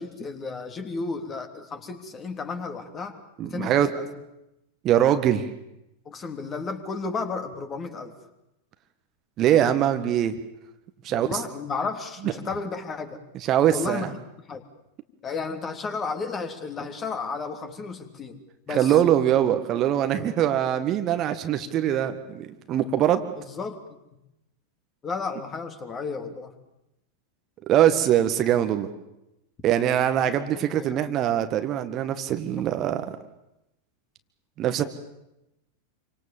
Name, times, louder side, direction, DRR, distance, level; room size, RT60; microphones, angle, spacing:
voice 1, 0.0-3.2 3.4-4.1 6.0-8.1 11.1-13.2 13.7-14.6 15.2-18.4 18.7-19.0 20.2-20.3 23.3-23.8 25.0-26.5 30.2-31.0, left 4 dB, 25° left, 6 dB, 3.2 m, -33 dB
voice 2, 3.4-3.9 4.8-5.5 9.4-10.4 11.0-11.4 13.5-14.1 18.7-23.2 27.7-28.9 29.6-33.1 34.6-34.8, right 11 dB, 35° right, 8 dB, 1.7 m, -22 dB
27.5 x 25.0 x 7.4 m, 0.88 s
figure-of-eight pair, 90°, 0 cm